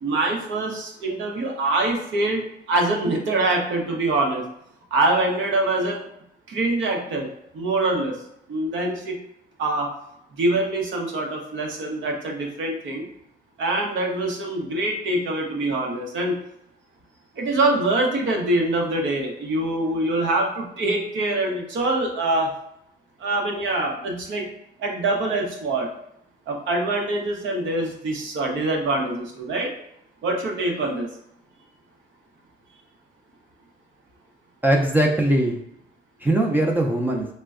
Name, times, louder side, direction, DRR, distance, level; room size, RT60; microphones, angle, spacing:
voice 1, 0.0-4.4 4.9-6.1 6.5-7.3 7.5-8.1 8.5-9.2 9.6-9.9 10.4-13.1 13.6-16.4 17.4-22.5 23.2-24.5 24.8-25.9 26.5-29.7 30.2-31.1, right 2 dB, 75° right, 1 dB, 0.8 m, -24 dB
voice 2, 34.6-35.6 36.2-37.3, right 1 dB, 10° right, 0 dB, 0.4 m, -20 dB
4.2 x 2.1 x 2.4 m, 0.77 s
cardioid pair, 90°, 20 cm